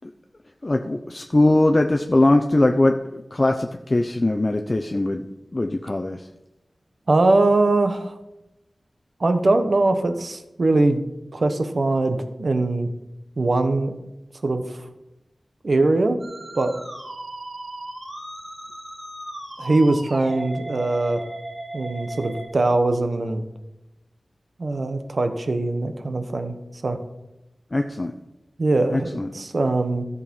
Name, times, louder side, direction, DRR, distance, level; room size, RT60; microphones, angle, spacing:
voice 1, 0.6-5.2 5.5-6.2 27.7-28.1 28.9-29.3, left 2 dB, 35° left, 4 dB, 0.7 m, -21 dB
voice 2, 7.1-8.1 9.2-11.0 11.3-12.9 13.4-13.9 14.4-14.8 15.6-16.2 16.5-16.7 19.6-21.2 21.7-23.4 24.6-26.5 26.8-27.0 28.6-29.1 29.3-30.0, right 2 dB, 60° right, 8 dB, 1.2 m, -21 dB
Musical instrument, 16.2-22.5, right 1 dB, 80° right, 3.6 m, -36 dB
13.5 x 6.8 x 5.5 m, 0.94 s
wide cardioid pair, 85°, 0 cm